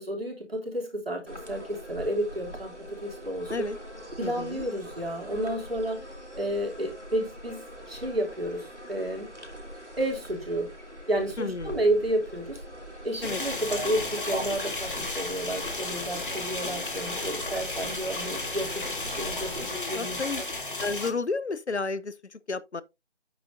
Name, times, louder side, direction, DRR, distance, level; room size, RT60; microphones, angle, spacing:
voice 1, 0.0-3.7 4.2-6.0 6.3-9.3 10.0-10.7 11.1-12.6 13.0-20.5, right 1 dB, 60° right, 3.2 m, -31 dB
sound 1, 1.3-19.7, equal, 90° right, 3.1 m, -42 dB
voice 2, 4.2-4.7 11.4-11.8 13.2-13.4 19.6-20.4 20.8-22.8, left 4 dB, 75° left, 0.9 m, -32 dB
sound 2, 13.2-21.1, left 2 dB, 50° left, 1.9 m, -34 dB
8.7 x 8.3 x 2.6 m
figure-of-eight pair, 165°, 34 cm